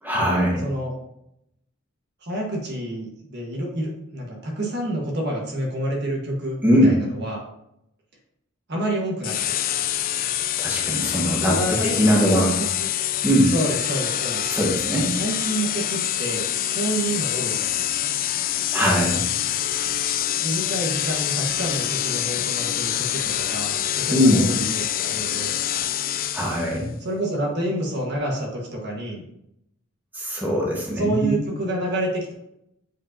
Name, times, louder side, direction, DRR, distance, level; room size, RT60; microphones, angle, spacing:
voice 1, 0.0-0.6 6.6-6.9 10.6-12.5 13.2-13.5 14.4-15.1 18.7-19.2 24.1-24.5 26.3-26.9 30.1-31.4, equal, 10° right, -4 dB, 1.4 m, -21 dB
voice 2, 0.6-0.9 2.2-7.4 8.7-9.5 11.4-12.7 13.5-14.5 15.0-18.1 20.4-25.6 27.0-29.2 31.0-32.3, right 1 dB, 55° right, -1 dB, 1.5 m, -28 dB
sound 1, 9.2-26.8, left 12 dB, 45° left, 0.4 m, -26 dB
8.1 x 4.8 x 2.8 m, 0.80 s
head